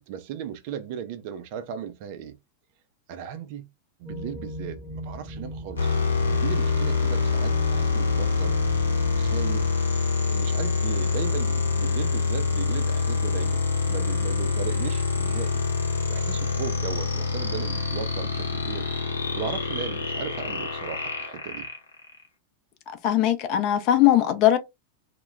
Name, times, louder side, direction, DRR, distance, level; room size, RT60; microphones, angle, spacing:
voice 1, 0.0-2.4 3.1-3.7 4.0-6.0 6.3-8.6 9.1-9.7 10.2-15.6 16.1-18.9 19.4-21.7, right 8 dB, 45° right, 0.4 m, -36 dB
sound 1, 4.1-9.7, equal, 5° right, 0.9 m, -38 dB
sound 2, 5.8-22.2, left 4 dB, 75° left, 0.8 m, -25 dB
voice 2, 23.0-24.6, left 12 dB, 40° left, 0.5 m, -20 dB
2.2 x 2.2 x 3.1 m
figure-of-eight pair, 90°, 0 cm